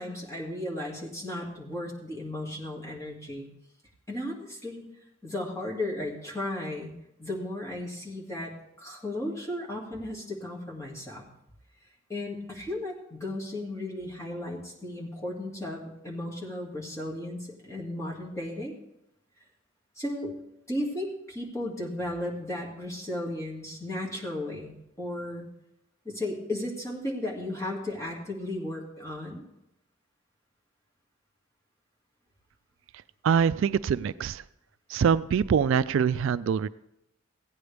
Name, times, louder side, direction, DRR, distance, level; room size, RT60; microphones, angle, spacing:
voice 1, 0.0-3.5 4.1-4.8 5.2-6.9 7.2-11.3 12.1-18.7 20.0-20.3 20.7-24.7 25.0-25.5 26.0-29.4, left 1 dB, 15° left, -2 dB, 2.2 m, -35 dB
voice 2, 33.2-34.4 34.9-36.7, right 7 dB, 70° right, 16 dB, 0.3 m, -24 dB
15.5 x 9.4 x 3.4 m, 0.83 s
head